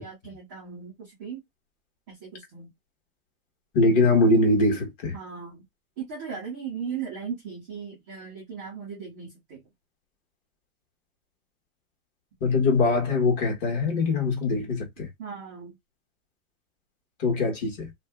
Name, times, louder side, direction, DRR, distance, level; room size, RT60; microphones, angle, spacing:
voice 1, 0.0-1.4 2.1-2.7 5.1-5.6 6.0-9.6 15.2-15.8, right 6 dB, 15° right, 0.3 m, -37 dB
voice 2, 3.7-5.1 12.4-15.1 17.2-17.9, left 2 dB, 35° left, 1.3 m, -22 dB
2.6 x 2.1 x 3.4 m
supercardioid pair, 155°, 45 cm